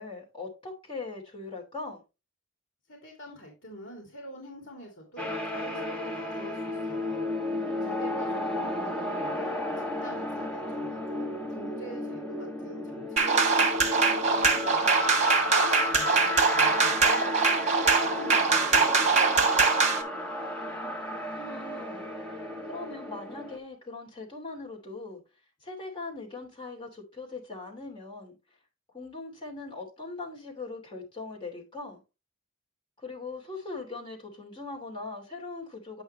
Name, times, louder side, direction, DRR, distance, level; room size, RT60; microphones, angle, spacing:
voice 1, 0.0-2.0 8.3-8.9 20.7-22.0 22.6-25.2 25.6-28.4 28.9-32.0 33.0-36.0, left 3 dB, 25° left, 2.8 m, -40 dB
voice 2, 2.9-7.3 7.8-15.0 15.4-19.7, equal, 65° left, 2.7 m, -45 dB
sound 1, 5.2-23.6, left 2 dB, 5° left, 1.2 m, -33 dB
sound 2, 13.2-20.0, right 4 dB, 30° right, 1.4 m, -23 dB
9.1 x 5.6 x 3.1 m
head